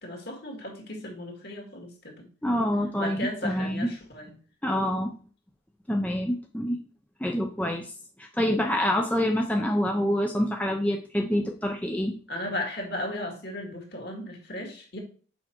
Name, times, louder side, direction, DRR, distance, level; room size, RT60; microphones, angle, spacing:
voice 1, 0.0-2.3 3.0-4.4 9.6-9.7 12.3-15.0, left 1 dB, 55° left, 2 dB, 1.9 m, -35 dB
voice 2, 2.4-3.9 4.6-5.1 5.9-6.8 7.2-7.8 8.2-12.1, equal, 5° left, 1 dB, 0.6 m, -26 dB
6.4 x 4.9 x 4.4 m, 0.40 s
head